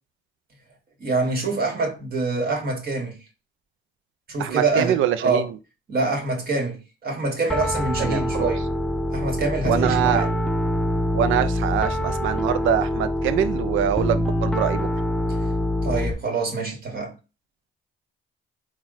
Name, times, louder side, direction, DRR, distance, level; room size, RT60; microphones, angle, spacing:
voice 1, 1.0-3.2 4.3-5.5 5.9-8.7 9.1-10.4 15.8-17.1, right 3 dB, 50° right, 1.8 m, -25 dB
voice 2, 4.4-5.5 8.0-8.5 9.6-10.3 11.1-14.9, right 10 dB, 85° right, 0.5 m, -24 dB
Piano, 7.5-16.1, left 1 dB, 5° left, 0.4 m, -25 dB
4.1 x 2.4 x 3.9 m
cardioid pair, 90°, 20 cm